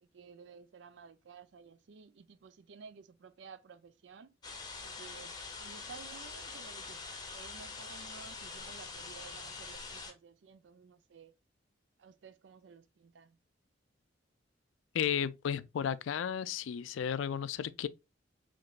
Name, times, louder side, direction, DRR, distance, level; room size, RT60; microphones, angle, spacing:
voice 1, 0.0-4.3 4.8-7.0 7.3-11.3 12.0-13.4, right 5 dB, 70° right, 0.4 m, -54 dB
sound 1, 4.4-10.1, left 4 dB, 20° left, 0.7 m, -44 dB
voice 2, 14.9-17.9, left 8 dB, 85° left, 0.3 m, -33 dB
5.1 x 3.0 x 2.3 m
head